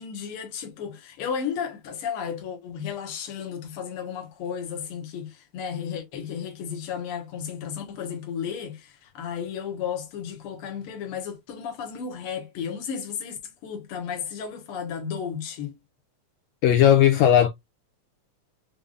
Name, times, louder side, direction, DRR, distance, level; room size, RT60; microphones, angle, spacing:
voice 1, 0.0-15.8, left 7 dB, 60° left, 1.8 m, -33 dB
voice 2, 16.6-17.5, left 10 dB, 80° left, 1.8 m, -16 dB
5.3 x 3.4 x 2.4 m
omnidirectional pair, 3.3 m